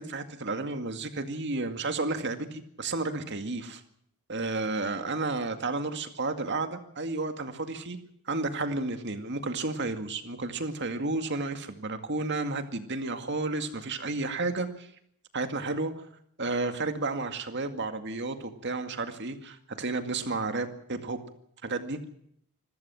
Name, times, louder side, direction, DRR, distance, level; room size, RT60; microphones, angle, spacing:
voice 1, 0.0-3.8 4.3-8.0 8.3-14.9 15.3-16.0 16.4-21.2 21.6-22.0, right 3 dB, 50° right, 7 dB, 2.2 m, -32 dB
26.5 x 14.0 x 7.6 m, 0.70 s
head